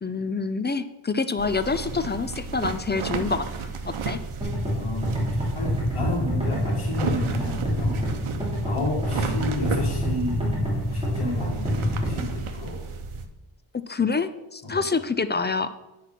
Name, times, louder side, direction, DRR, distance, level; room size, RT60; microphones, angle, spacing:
voice 1, 0.0-3.5 4.0-4.2 13.9-15.7, left 4 dB, 25° left, 12 dB, 0.3 m, -26 dB
sound 1, 1.4-13.3, right 5 dB, 80° right, 0.9 m, -33 dB
sound 2, 4.4-12.4, equal, 10° right, 3.4 m, -27 dB
voice 2, 4.7-5.1 5.5-8.0 8.6-10.6 10.9-12.8 14.6-14.8, left 2 dB, 65° left, -6 dB, 2.4 m, -32 dB
9.9 x 4.6 x 5.9 m, 1.0 s
wide cardioid pair, 120°, 50 cm